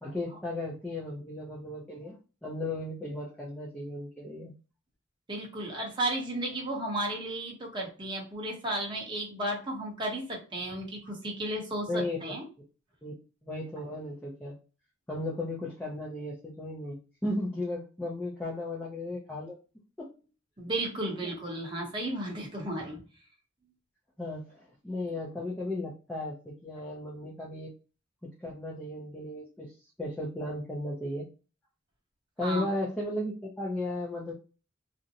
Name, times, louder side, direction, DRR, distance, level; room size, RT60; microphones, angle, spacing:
voice 1, 0.0-2.2 2.4-4.5 11.9-12.2 13.0-13.1 13.4-14.6 15.1-19.6 20.0-20.1 21.2-21.3 24.2-27.7 28.2-29.7 30.0-31.3 32.4-34.3, left 1 dB, 5° left, -5 dB, 0.5 m, -35 dB
voice 2, 5.3-12.4 20.6-23.0 32.4-32.7, right 1 dB, 25° right, -1 dB, 0.8 m, -34 dB
2.5 x 2.1 x 2.7 m, 0.34 s
head